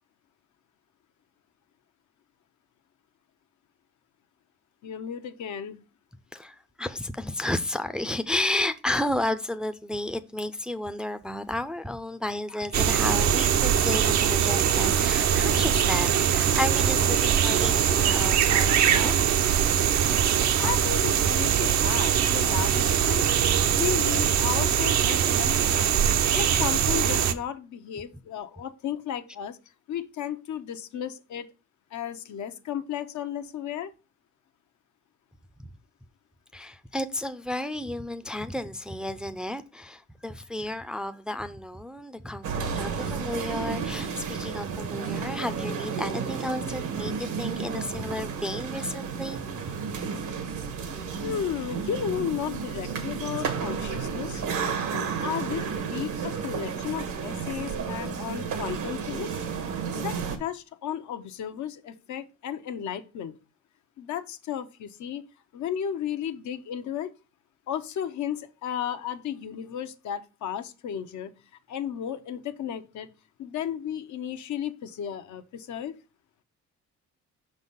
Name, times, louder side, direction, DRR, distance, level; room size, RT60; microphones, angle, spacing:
voice 1, 4.8-5.8 20.6-23.3 23.7-25.9 26.3-29.6 29.9-31.5 31.9-33.9 51.2-54.4 54.9-59.3 59.9-63.3 64.0-65.2 65.5-67.1 67.7-71.3 71.7-73.1 73.4-76.0, left 9 dB, 70° left, 0.7 m, -34 dB
voice 2, 6.3-19.1 19.7-19.8 20.6-20.7 36.5-49.7, left 1 dB, 5° right, 0.4 m, -32 dB
sound 1, 12.7-27.3, right 9 dB, 70° right, 0.7 m, -22 dB
sound 2, 42.4-60.4, right 6 dB, 85° right, 1.3 m, -32 dB
5.6 x 4.0 x 5.3 m
cardioid pair, 90°, 30 cm